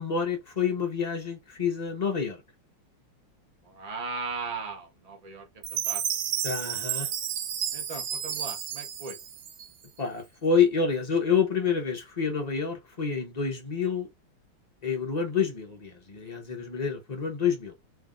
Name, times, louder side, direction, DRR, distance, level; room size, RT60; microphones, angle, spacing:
voice 1, 0.0-2.4 6.4-7.1 10.0-14.1 14.8-17.7, left 6 dB, 75° left, 0.3 m, -28 dB
voice 2, 3.7-5.4 5.7-6.0 7.7-9.2, right 4 dB, 40° right, 0.5 m, -37 dB
Chime, 5.6-10.0, right 10 dB, 90° right, 1.7 m, -32 dB
3.4 x 2.8 x 3.7 m
omnidirectional pair, 2.3 m